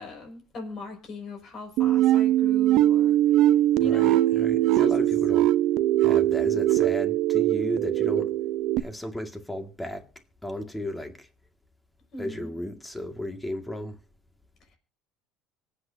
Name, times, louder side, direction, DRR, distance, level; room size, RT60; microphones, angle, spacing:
voice 1, 0.0-4.9 12.1-12.5, left 2 dB, 40° left, 5.7 m, -40 dB
sound 1, 1.8-8.8, right 13 dB, 65° right, 0.7 m, -21 dB
voice 2, 3.8-5.5 6.0-8.3 8.8-10.1 10.4-11.3 12.2-14.0, left 1 dB, 5° left, 2.0 m, -34 dB
25.0 x 8.7 x 2.7 m
cardioid pair, 130°, 0 cm